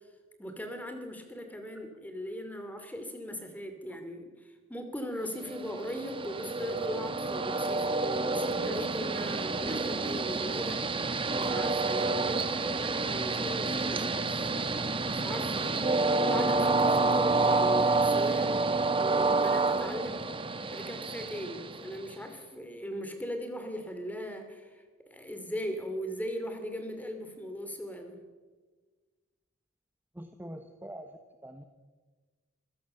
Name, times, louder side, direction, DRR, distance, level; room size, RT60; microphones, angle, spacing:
voice 1, 0.4-10.8 11.3-14.8 15.0-15.9 16.2-18.6 18.8-20.2 20.7-24.8 25.1-28.2, equal, 10° left, 6 dB, 2.9 m, -39 dB
Train, 5.5-22.2, right 3 dB, 25° right, 1.2 m, -29 dB
voice 2, 30.2-31.6, right 1 dB, 10° right, 6 dB, 1.1 m, -44 dB
26.0 x 16.0 x 6.9 m, 1.4 s
head